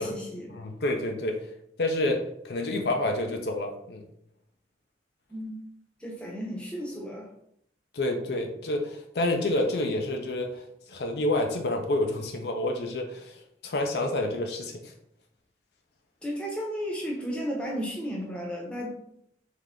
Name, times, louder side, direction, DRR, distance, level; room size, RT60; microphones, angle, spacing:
voice 1, 0.0-0.6 5.3-5.6 6.0-7.3 16.2-19.0, equal, 5° left, -2 dB, 0.8 m, -34 dB
voice 2, 0.5-1.5 1.8-4.0 7.9-14.9, left 1 dB, 65° left, 3 dB, 0.5 m, -29 dB
3.6 x 3.3 x 3.6 m, 0.73 s
head